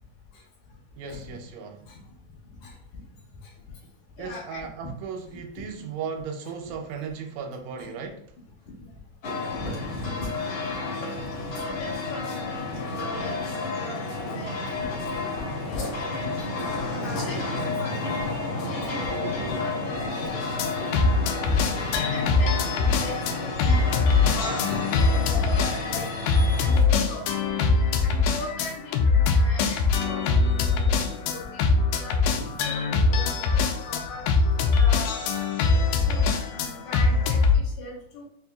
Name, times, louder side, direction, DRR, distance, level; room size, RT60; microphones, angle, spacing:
voice 1, 1.0-1.8 4.2-8.2, right 6 dB, 80° right, 4 dB, 2.1 m, -36 dB
voice 2, 2.6-3.0 3.4-3.5 4.2-4.9 5.8-5.9 7.8-7.9 8.8-8.9 9.4-10.1 11.6-16.3 16.8-21.2 21.5-21.8 22.1-26.1 26.6-27.5 28.0-31.6 32.0-34.2 34.7-35.3 36.1-38.2, left 2 dB, 70° left, -2 dB, 2.2 m, -39 dB
sound 1, 9.2-26.8, left 3 dB, 55° left, 1.7 m, -31 dB
sound 2, 20.4-37.6, left 4 dB, 85° left, 2.3 m, -23 dB
6.3 x 2.7 x 2.3 m, 0.63 s
omnidirectional pair, 3.9 m